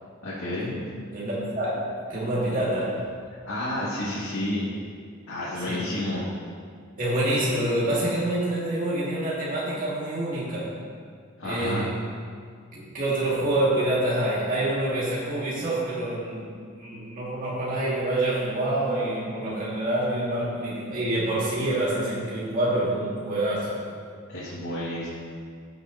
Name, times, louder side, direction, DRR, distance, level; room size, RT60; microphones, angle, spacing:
voice 1, 0.2-0.7 3.5-4.7 5.3-6.3 11.4-11.9 24.3-25.1, left 1 dB, 90° left, -10 dB, 2.2 m, -30 dB
voice 2, 1.1-2.9 5.7-5.9 7.0-10.7 11.4-11.9 12.7-23.8, right 1 dB, 40° right, -8 dB, 2.4 m, -27 dB
15.5 x 6.7 x 3.0 m, 2.1 s
head